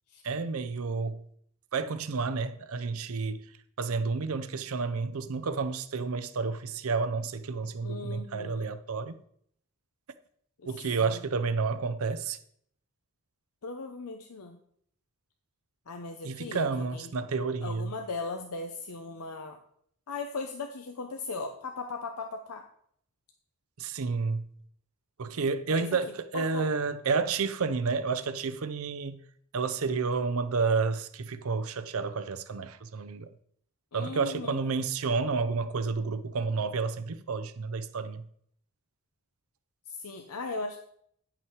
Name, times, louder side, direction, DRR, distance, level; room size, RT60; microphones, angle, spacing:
voice 1, 0.2-1.2 1.7-9.2 10.6-12.4 16.2-17.9 23.8-24.4 25.2-29.2 29.5-33.3 33.9-38.3, right 4 dB, 75° right, 0.6 m, -30 dB
voice 2, 7.8-8.7 10.6-11.3 13.6-14.6 15.9-17.1 17.6-19.6 20.1-22.7 25.7-25.9 26.3-26.7 33.9-34.6 39.9-40.8, left 3 dB, 90° left, 0.8 m, -38 dB
9.9 x 5.9 x 4.6 m
head